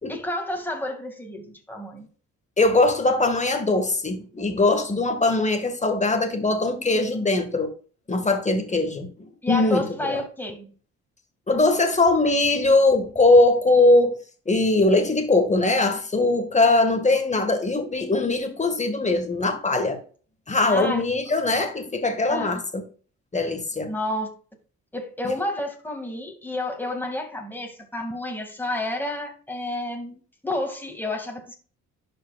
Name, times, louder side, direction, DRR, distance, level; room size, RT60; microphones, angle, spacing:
voice 1, 0.1-2.1 9.4-10.7 20.6-21.0 22.3-22.6 23.9-24.3 24.9-31.5, left 1 dB, 5° left, 2.2 m, -30 dB
voice 2, 2.6-7.7 8.1-10.2 11.5-14.2 14.4-20.0 20.5-22.8 23.3-23.9 25.2-25.3, left 2 dB, 25° left, 1.7 m, -21 dB
11.5 x 5.1 x 2.4 m
cardioid pair, 90°, 30 cm